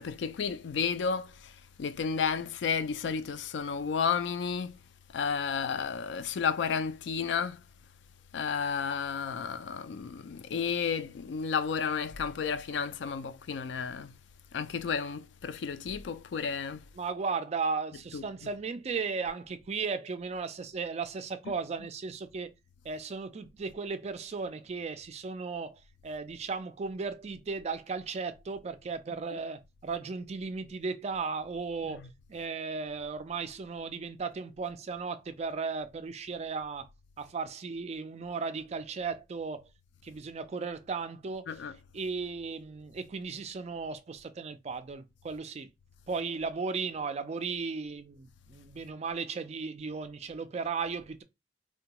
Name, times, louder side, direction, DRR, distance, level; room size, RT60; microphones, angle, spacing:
voice 1, 0.0-4.8 5.1-7.6 8.3-14.2 14.5-16.9 18.1-18.5 29.3-29.4 31.8-32.1 41.5-41.8, left 6 dB, 70° left, 0.4 m, -32 dB
voice 2, 17.0-22.5 22.8-36.9 37.2-39.6 40.0-41.5 41.9-45.7 46.1-51.2, right 4 dB, 35° right, 0.4 m, -36 dB
3.5 x 2.2 x 2.9 m
head